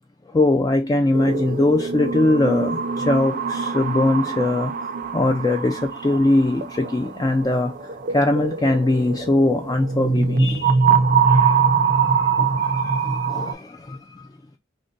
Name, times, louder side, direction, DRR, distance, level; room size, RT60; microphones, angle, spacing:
voice 1, 0.3-10.9 11.2-14.3, left 2 dB, 20° left, 0.3 m, -22 dB
sound 1, 1.1-13.5, right 5 dB, 45° right, 0.5 m, -23 dB
3.6 x 2.1 x 3.8 m
head